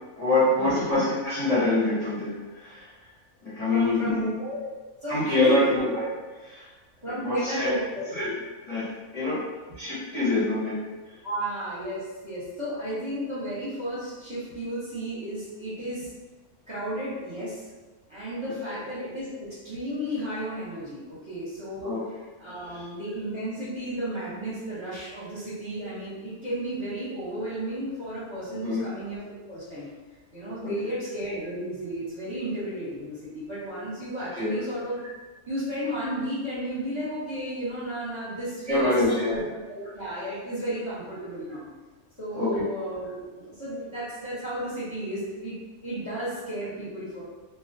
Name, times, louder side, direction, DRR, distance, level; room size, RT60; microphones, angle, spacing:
voice 1, 0.2-2.9 3.4-4.3 5.1-6.1 6.4-6.7 7.0-7.7 8.1-8.3 8.7-9.4 9.8-10.8 18.7-18.8 21.8-22.0 22.7-22.8 28.6-28.9 30.6-30.9 34.4-34.6 38.7-39.4 42.3-42.6, left 2 dB, 35° left, -10 dB, 0.6 m, -25 dB
voice 2, 3.7-5.8 7.0-8.1 11.2-16.1 16.7-17.6 18.1-21.9 22.4-29.2 29.5-29.9 30.3-35.1 35.5-38.9 39.3-39.4 39.7-41.7 42.2-45.5 45.8-47.2, right 1 dB, 25° right, -12 dB, 0.8 m, -33 dB
2.3 x 2.2 x 2.6 m, 1.2 s
omnidirectional pair, 1.6 m